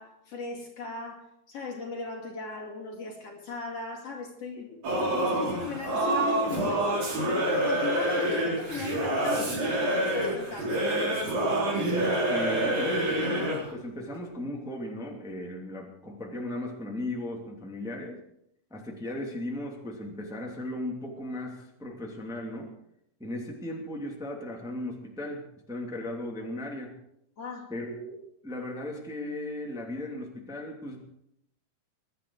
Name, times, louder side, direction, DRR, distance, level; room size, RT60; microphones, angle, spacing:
voice 1, 0.0-6.9 7.2-10.9 27.4-27.7, left 4 dB, 45° left, -1 dB, 3.2 m, -38 dB
Singing / Musical instrument, 4.8-13.7, right 1 dB, 55° right, 5.5 m, -27 dB
voice 2, 11.8-18.2 18.7-22.7 23.2-26.9 27.7-31.0, left 1 dB, ahead, -1 dB, 2.1 m, -36 dB
22.5 x 11.5 x 4.8 m, 0.77 s
omnidirectional pair, 4.0 m